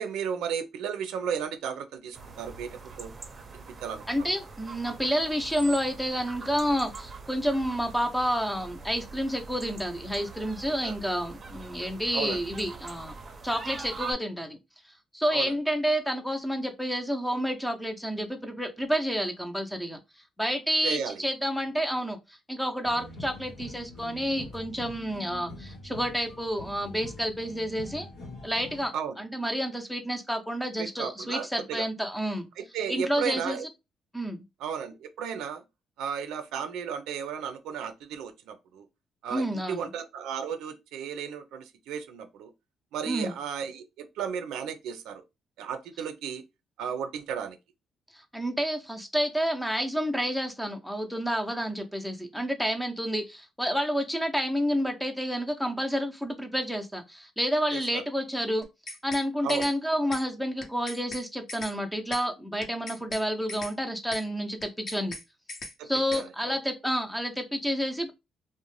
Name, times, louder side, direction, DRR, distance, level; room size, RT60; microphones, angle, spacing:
voice 1, 0.0-3.1 3.5-4.3 10.7-10.9 12.1-12.4 15.3-15.5 20.8-21.2 28.9-29.2 30.8-31.8 32.6-33.6 34.6-35.6 36.0-38.9 39.2-42.5 42.9-45.2 45.6-46.4 46.8-47.6 57.7-58.0 59.4-59.7 65.8-66.6, right 7 dB, 90° right, 0.4 m, -34 dB
sound 1, 2.1-14.1, right 4 dB, 45° right, 0.6 m, -43 dB
voice 2, 4.1-13.1 13.4-14.6 15.1-20.0 20.4-22.2 22.5-28.1 28.4-32.5 32.9-33.6 34.1-34.4 39.3-39.9 43.0-43.3 48.3-58.7 59.0-65.1 65.9-68.1, equal, 5° left, 0.6 m, -29 dB
sound 2, 22.8-28.9, left 2 dB, 85° left, 0.8 m, -44 dB
sound 3, 58.6-59.2 59.5-59.7 60.1-60.2 60.6-61.2 61.5-61.7 62.1-62.2 62.6-63.2 63.5-63.7 64.1-64.2 64.6-65.2 65.5-65.7 66.1-66.2, left 2 dB, 50° left, 0.7 m, -39 dB
2.5 x 2.1 x 3.1 m
cardioid pair, 90°, 0 cm